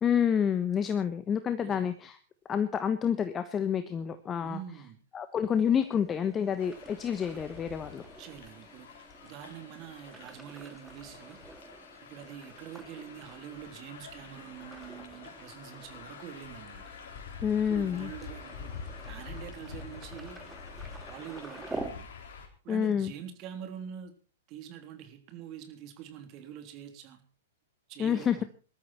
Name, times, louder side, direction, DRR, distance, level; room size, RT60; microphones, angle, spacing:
voice 1, 0.0-2.2 2.5-4.6 5.1-8.0 17.4-18.1 22.7-23.1 28.0-28.4, left 8 dB, 20° left, 11 dB, 1.1 m, -28 dB
voice 2, 1.6-1.9 4.4-5.0 8.2-11.4 12.0-16.8 17.7-18.8 19.1-20.5 20.9-22.1 22.6-24.1 24.5-27.2 27.9-28.4, right 9 dB, 40° right, 7 dB, 3.3 m, -45 dB
sound 1, 5.5-21.9, right 2 dB, 5° right, 1.9 m, -48 dB
sound 2, 6.6-22.5, left 5 dB, 60° left, 4.2 m, -47 dB
20.0 x 13.0 x 4.5 m, 0.37 s
figure-of-eight pair, 110°, 0 cm